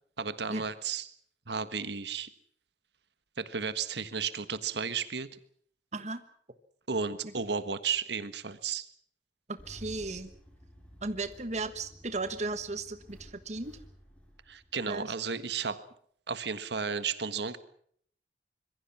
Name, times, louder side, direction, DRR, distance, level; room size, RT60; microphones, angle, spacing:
voice 1, 0.2-1.1 1.5-2.3 3.4-5.3 6.9-8.9 14.5-15.8 16.3-17.6, right 5 dB, 70° right, 12 dB, 1.5 m, -33 dB
voice 2, 9.5-10.3 11.0-13.8 14.9-15.1, right 3 dB, 40° right, 10 dB, 1.4 m, -35 dB
Engine starting, 9.6-15.1, equal, 5° left, 6.9 m, -53 dB
26.0 x 22.5 x 6.0 m, 0.62 s
head